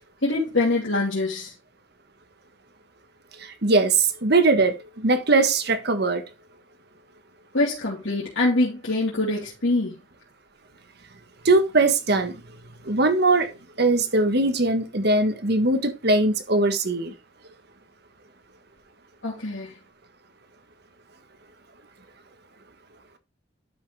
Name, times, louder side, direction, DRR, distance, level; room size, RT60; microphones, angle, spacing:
voice 1, 0.2-1.5 7.5-10.0 19.2-19.8, left 2 dB, 75° left, 2.9 m, -24 dB
voice 2, 3.4-6.2 11.4-12.4 12.8-13.5 13.8-17.1, right 2 dB, 55° right, 1.4 m, -21 dB
12.0 x 5.7 x 3.3 m
head